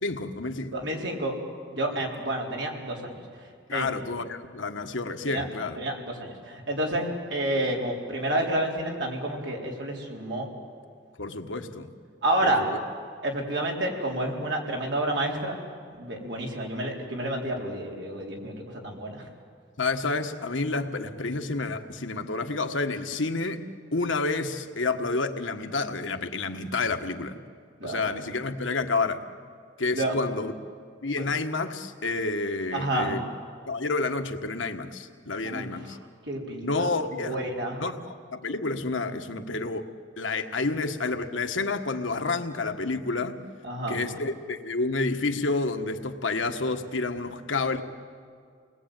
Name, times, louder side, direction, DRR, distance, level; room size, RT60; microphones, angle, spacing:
voice 1, 0.0-0.7 1.9-2.0 3.7-5.8 11.2-11.9 12.4-12.8 19.8-23.6 23.9-27.4 27.8-29.2 29.8-30.5 31.0-33.2 33.7-36.0 36.6-37.4 37.8-43.4 43.9-47.8, left 3 dB, 85° left, 7 dB, 1.5 m, -29 dB
voice 2, 0.7-1.4 1.7-3.2 3.7-3.9 5.3-5.4 5.8-10.5 12.2-12.6 13.2-15.5 15.9-19.2 27.8-28.1 29.9-30.1 31.2-31.3 32.7-33.2 35.4-35.7 36.2-36.9 37.2-37.8 43.6-44.0, right 1 dB, 65° right, 0 dB, 4.4 m, -29 dB
29.5 x 21.0 x 9.1 m, 2.1 s
head